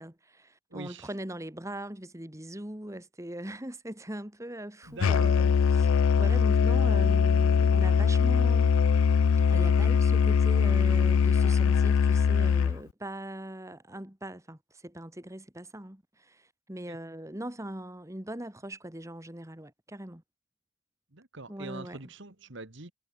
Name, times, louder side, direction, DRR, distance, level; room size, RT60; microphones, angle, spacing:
voice 1, 0.0-8.8 9.5-20.2 21.5-22.1, right 1 dB, 15° right, 2.0 m, -41 dB
voice 2, 0.7-1.1 4.9-5.3 16.9-17.0 21.1-22.9, right 3 dB, 60° right, 1.9 m, -43 dB
Musical instrument, 5.0-12.8, left 6 dB, 75° left, 0.4 m, -22 dB
head